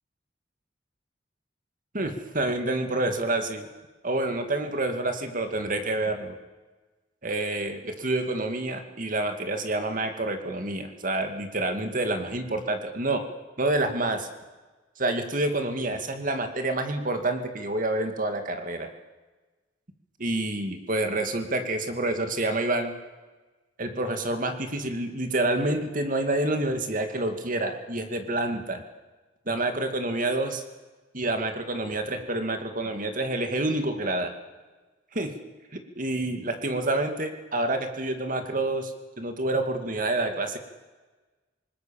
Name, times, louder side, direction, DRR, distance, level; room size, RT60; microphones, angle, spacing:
voice 1, 1.9-3.6 4.0-6.4 7.2-13.2 13.6-14.3 15.0-18.9 20.2-23.0 23.8-28.8 29.5-30.6 31.1-34.3 35.1-35.3 35.7-40.6, right 2 dB, 45° right, 6 dB, 2.4 m, -28 dB
27.5 x 19.5 x 7.2 m, 1.2 s
head